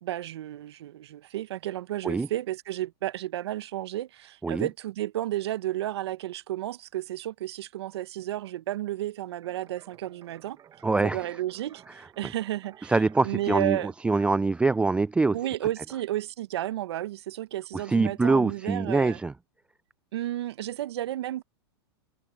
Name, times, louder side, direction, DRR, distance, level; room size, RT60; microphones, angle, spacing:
voice 1, 0.0-10.6 11.0-12.9 13.2-13.9 15.3-19.2 20.1-21.4, right 14 dB, 75° right, 1.1 m, -32 dB
sound 1, 9.4-14.4, right 9 dB, 25° right, 1.7 m, -56 dB
voice 2, 10.8-11.3 12.9-15.4 17.7-19.3, right 3 dB, 10° right, 0.3 m, -24 dB
open air
hypercardioid pair, 115°, 14 cm